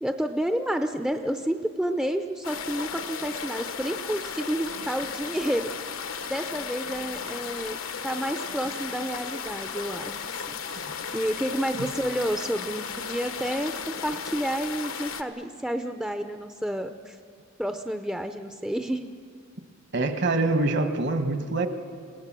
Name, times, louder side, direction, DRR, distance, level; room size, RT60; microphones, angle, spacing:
voice 1, 0.0-5.9 6.3-7.8 8.0-10.2 10.5-10.8 11.1-17.2 17.6-19.1, equal, 5° right, 7 dB, 0.6 m, -30 dB
sound 1, 2.4-15.2, left 6 dB, 75° left, 1.1 m, -35 dB
voice 2, 19.9-21.7, right 2 dB, 55° right, 8 dB, 1.4 m, -25 dB
27.5 x 17.5 x 7.5 m, 2.2 s
head